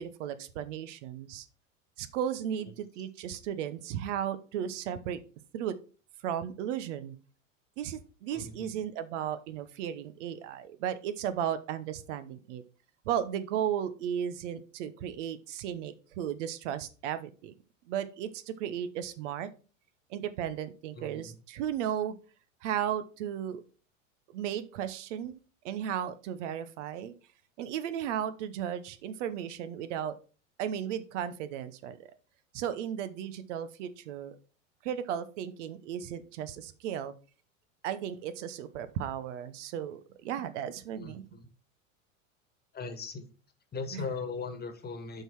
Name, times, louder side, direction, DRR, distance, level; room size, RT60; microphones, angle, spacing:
voice 1, 0.0-1.5 2.0-5.2 5.5-5.8 6.2-7.2 7.8-12.6 13.1-17.5 17.9-19.5 20.1-22.2 22.6-23.6 24.3-25.4 25.6-27.1 27.6-30.1 30.6-32.1 32.5-34.4 34.8-37.1 37.8-41.2 43.9-44.0, right 9 dB, 65° right, 12 dB, 1.0 m, -35 dB
voice 2, 8.3-8.8 20.9-21.3 41.0-41.5 42.7-43.3 43.7-45.2, left 4 dB, 25° left, 9 dB, 1.5 m, -39 dB
7.7 x 4.8 x 4.5 m, 0.36 s
hypercardioid pair, 90°, 39 cm